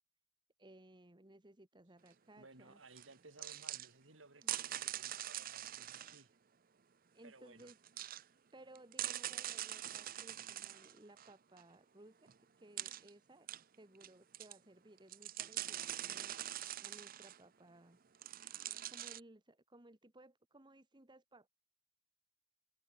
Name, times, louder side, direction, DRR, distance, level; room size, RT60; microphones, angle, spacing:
voice 1, 0.6-2.8 4.4-4.5 7.1-7.8 8.5-12.2 12.6-13.5 13.8-16.3 16.8-18.0 18.9-21.5, right 1 dB, 25° right, 1.7 m, -60 dB
voice 2, 2.4-6.3 7.2-7.7 8.3-8.4, right 3 dB, 90° right, 4.3 m, -60 dB
sound 1, 3.0-3.1 3.4-3.9 4.4-6.2 7.6-8.2 8.8-11.6 12.3-12.4 12.8-13.1 13.5-14.1 14.3-14.6 15.0-17.4 18.2-19.2, right 12 dB, 50° right, 0.7 m, -43 dB
open air
head